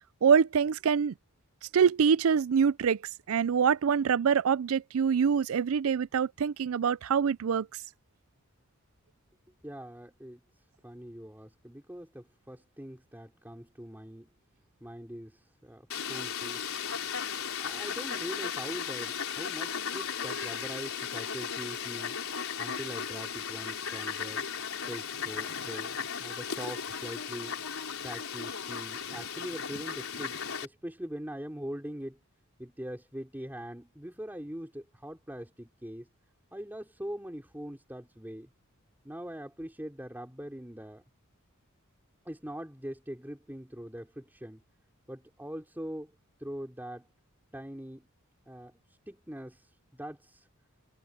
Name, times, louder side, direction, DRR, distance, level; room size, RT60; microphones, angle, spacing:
voice 1, 0.2-1.1 1.7-3.0 3.3-7.7, right 6 dB, 70° right, 0.4 m, -25 dB
voice 2, 9.6-10.4 10.8-14.3 14.8-16.9 17.6-22.2 22.6-24.5 24.9-25.9 26.2-27.5 28.0-32.2 32.6-36.1 36.5-38.5 39.0-41.0 42.2-44.6 45.1-46.1 46.4-47.1 47.5-48.1 48.5-50.5, equal, 10° right, 3.8 m, -42 dB
Fowl, 15.9-30.7, left 7 dB, 75° left, 4.4 m, -36 dB
head